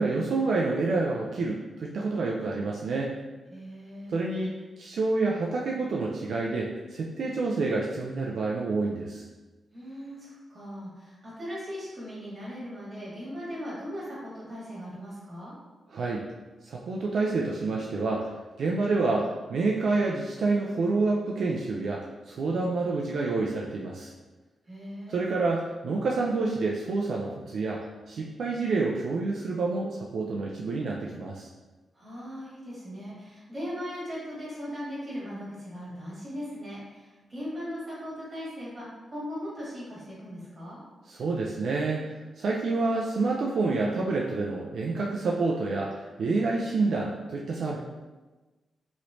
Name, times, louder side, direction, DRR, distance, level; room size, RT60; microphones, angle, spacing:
voice 1, 0.0-3.1 4.1-9.3 15.9-16.2 16.6-18.3 18.6-24.1 25.1-31.5 41.1-47.8, right 3 dB, 70° right, -2 dB, 0.3 m, -28 dB
voice 2, 3.5-4.2 9.7-15.5 24.6-25.2 31.9-40.8, equal, 30° right, -7 dB, 1.5 m, -38 dB
3.1 x 3.0 x 2.6 m, 1.2 s
wide cardioid pair, 110°, 0 cm